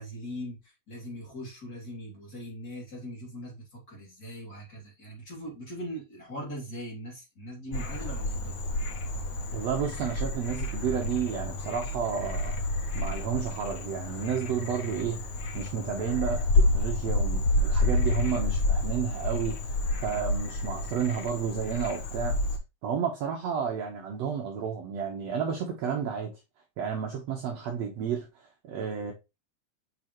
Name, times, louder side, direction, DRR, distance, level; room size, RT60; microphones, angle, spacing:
voice 1, 0.0-8.6, equal, 30° left, 3.2 m, -40 dB
Frog, 7.7-22.6, left 2 dB, 90° left, 1.0 m, -29 dB
voice 2, 9.5-12.7 12.9-15.2 15.5-19.6 20.0-22.4 22.8-26.4 26.8-29.1, right 7 dB, 60° right, 2.1 m, -31 dB
7.3 x 5.5 x 3.1 m
omnidirectional pair, 3.7 m